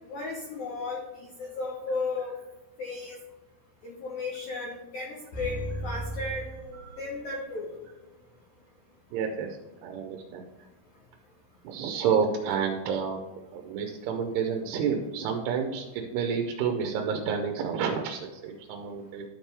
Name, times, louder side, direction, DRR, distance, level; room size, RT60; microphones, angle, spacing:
voice 1, 0.1-2.3 2.8-3.2 3.8-6.5 7.0-7.7, left 3 dB, 75° left, -2 dB, 1.7 m, -34 dB
sound 1, 5.3-7.5 7.8-7.9, right 1 dB, 55° left, 1.5 m, -37 dB
voice 2, 9.1-9.5 9.8-10.5 11.6-13.2 13.5-19.2, right 6 dB, 90° right, 3 dB, 2.7 m, -29 dB
12.0 x 4.4 x 3.3 m, 1.1 s
omnidirectional pair, 4.6 m